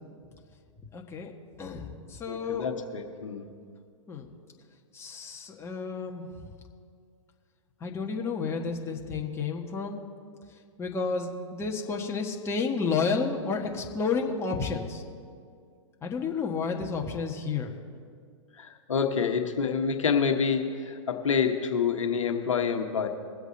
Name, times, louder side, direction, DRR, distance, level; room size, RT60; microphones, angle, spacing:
voice 1, 0.9-1.3 1.6-2.6 4.1-4.3 4.9-6.3 7.8-10.0 10.8-15.0 16.0-17.7, left 5 dB, 15° left, 1 dB, 1.4 m, -31 dB
voice 2, 2.3-3.5 18.5-23.1, left 6 dB, 75° left, 5 dB, 1.2 m, -27 dB
21.5 x 8.0 x 4.0 m, 2.2 s
hypercardioid pair, 115°, 16 cm